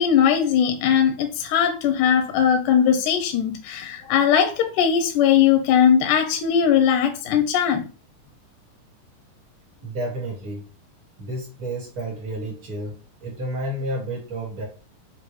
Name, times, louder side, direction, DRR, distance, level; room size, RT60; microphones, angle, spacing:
voice 1, 0.0-7.8, left 8 dB, 85° left, 6 dB, 2.0 m, -19 dB
voice 2, 9.8-10.6 11.2-14.6, right 1 dB, 45° right, -1 dB, 2.1 m, -31 dB
6.6 x 2.5 x 3.0 m, 0.36 s
omnidirectional pair, 3.7 m